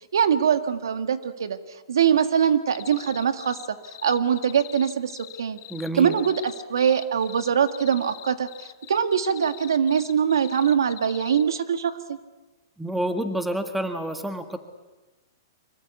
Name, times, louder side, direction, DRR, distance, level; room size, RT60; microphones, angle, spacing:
voice 1, 0.1-3.8 4.0-5.6 6.0-12.2, right 7 dB, 85° right, 10 dB, 1.8 m, -23 dB
sound 1, 2.7-11.4, left 17 dB, 45° left, 1.6 m, -43 dB
voice 2, 5.7-6.1 12.8-14.6, right 1 dB, 5° right, 8 dB, 1.6 m, -28 dB
25.0 x 23.0 x 8.3 m, 1.2 s
hypercardioid pair, 150°, 2 cm